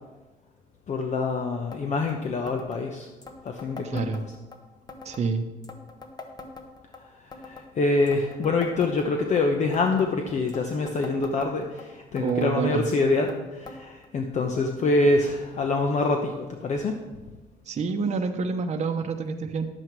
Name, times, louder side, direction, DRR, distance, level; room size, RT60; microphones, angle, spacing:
voice 1, 0.9-3.1 3.4-4.1 7.0-17.0, left 3 dB, 45° left, 4 dB, 0.9 m, -25 dB
sound 1, 1.7-1.8 2.1-2.2 2.5-2.8 3.2-4.6 4.9-5.3 5.6-7.0 7.3-7.7 8.1-9.4 9.7-10.1 10.5-11.8 12.2-12.5 12.9-13.4 13.7-13.8 14.0-14.1 14.9-15.0 15.8-15.9, left 3 dB, 25° left, 1.1 m, -43 dB
voice 2, 3.8-4.2 5.0-5.5 12.2-12.8 17.7-19.7, right 5 dB, 40° right, 4 dB, 0.9 m, -27 dB
11.0 x 7.8 x 4.6 m, 1.2 s
cardioid pair, 110°, 17 cm